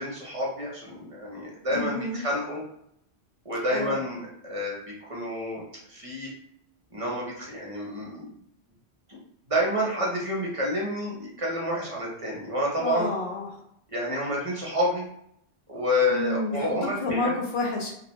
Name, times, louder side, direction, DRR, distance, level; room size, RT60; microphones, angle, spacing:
voice 1, 0.0-2.6 3.4-5.6 5.9-6.3 6.9-8.3 9.1-9.2 9.5-13.1 13.9-15.1 15.7-17.3, equal, 35° right, -3 dB, 0.6 m, -29 dB
voice 2, 1.7-2.2 3.7-4.0 12.8-13.6 16.1-16.8 17.0-17.9, left 2 dB, 70° left, -1 dB, 0.9 m, -29 dB
2.5 x 2.1 x 2.9 m, 0.72 s
omnidirectional pair, 1.1 m